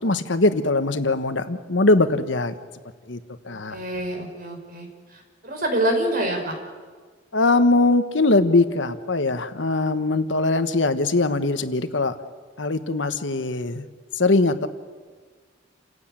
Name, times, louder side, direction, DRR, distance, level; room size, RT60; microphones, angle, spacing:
voice 1, 0.0-2.5 3.1-3.2 3.4-3.8 7.3-12.1 12.6-13.8 14.1-14.7, left 2 dB, 70° left, 10 dB, 1.3 m, -21 dB
voice 2, 3.5-6.5, right 1 dB, 50° right, 3 dB, 5.4 m, -27 dB
29.0 x 16.5 x 8.9 m, 1.5 s
head